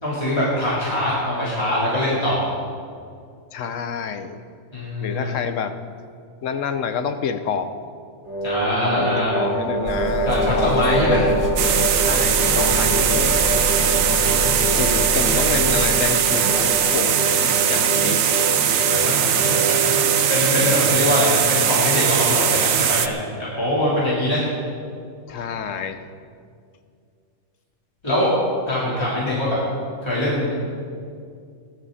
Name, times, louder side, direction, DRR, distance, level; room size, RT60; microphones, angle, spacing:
voice 1, 0.0-2.5 4.7-5.4 8.4-9.3 10.3-11.3 14.0-14.7 18.7-19.9 20.3-24.5 28.0-28.3 28.7-29.6 30.0-30.6, left 1 dB, 20° left, -9 dB, 3.7 m, -23 dB
voice 2, 3.5-4.4 5.0-5.8 6.4-7.7 8.8-10.3 10.6-11.2 12.0-13.5 14.8-18.2 25.3-26.0, left 6 dB, 65° left, 9 dB, 1.1 m, -28 dB
sound 1, 8.2-20.5, right 1 dB, 90° left, 3.9 m, -25 dB
sound 2, 9.8-16.0, right 2 dB, 20° right, 0.7 m, -28 dB
sound 3, 11.6-23.1, right 9 dB, 70° right, 1.1 m, -20 dB
19.5 x 12.0 x 4.2 m, 2.3 s
omnidirectional pair, 1.5 m